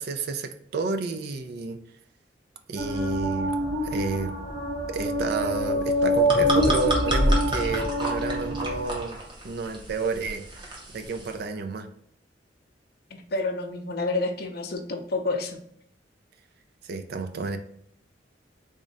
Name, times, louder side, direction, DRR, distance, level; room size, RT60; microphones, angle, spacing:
voice 1, 0.0-1.8 2.7-3.6 3.8-4.3 4.9-9.2 9.4-10.4 10.9-11.9 16.8-17.6, right 4 dB, 60° right, 7 dB, 0.4 m, -30 dB
sound 1, 2.7-8.8, equal, 75° right, 1.5 m, -25 dB
sound 2, 5.9-11.4, right 1 dB, 25° right, 0.7 m, -31 dB
voice 2, 13.1-15.6, left 3 dB, 55° left, 4 dB, 0.5 m, -29 dB
3.5 x 2.1 x 3.9 m, 0.68 s
head